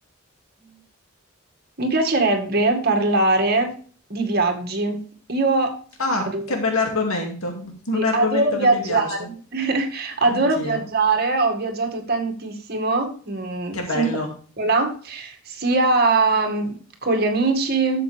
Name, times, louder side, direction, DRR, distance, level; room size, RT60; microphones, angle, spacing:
voice 1, 1.8-3.7 4.1-5.0 5.3-5.8 6.3-6.4 7.9-14.1 14.6-18.0, right 3 dB, 50° right, 3 dB, 2.0 m, -22 dB
voice 2, 6.0-9.3 10.3-10.8 13.7-14.3, left 2 dB, 85° left, 2 dB, 2.4 m, -26 dB
11.5 x 7.5 x 3.4 m, 0.42 s
head